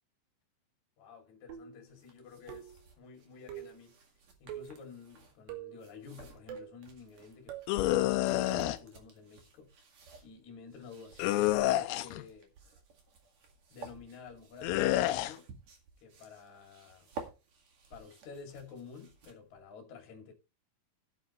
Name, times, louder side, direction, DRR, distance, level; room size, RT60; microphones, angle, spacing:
voice 1, 1.0-4.0 4.4-9.7 10.2-12.5 13.7-15.5 16.0-17.1 17.9-20.3, left 5 dB, 45° left, 3.2 m, -51 dB
sound 1, 1.5-1.9 2.5-2.9 3.5-3.8 4.5-4.8 5.5-5.8 6.5-6.8 7.5-7.7 8.5-8.8, right 9 dB, 70° right, 4.3 m, -44 dB
sound 2, 1.9-19.6, right 4 dB, 50° right, 2.3 m, -54 dB
sound 3, 7.7-8.8 11.2-12.2 14.6-15.3, left 15 dB, 85° left, 3.4 m, -28 dB
15.0 x 8.8 x 3.1 m
omnidirectional pair, 5.9 m